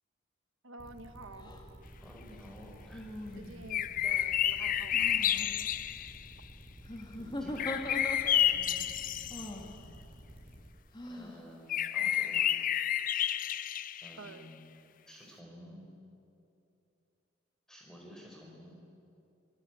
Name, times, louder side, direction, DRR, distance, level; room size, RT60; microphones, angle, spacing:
voice 1, 0.6-1.6 3.3-5.1 14.2-14.6, right 3 dB, 80° right, 9 dB, 1.5 m, -49 dB
sound 1, 0.8-10.7, equal, 30° right, 7.1 m, -51 dB
sound 2, 1.4-1.6 2.9-3.8 4.9-5.5 6.8-8.6 9.3-9.7 10.9-11.4, left 1 dB, 20° left, 2.4 m, -41 dB
voice 2, 2.0-3.2 7.2-9.2 11.0-12.5 13.2-13.5 14.0-14.7 15.1-15.9 17.7-18.8, equal, 5° left, -1 dB, 4.8 m, -52 dB
sound 3, 3.7-6.2 7.6-9.5 11.7-14.3, left 10 dB, 40° left, 0.5 m, -30 dB
22.5 x 21.0 x 9.2 m, 2.7 s
head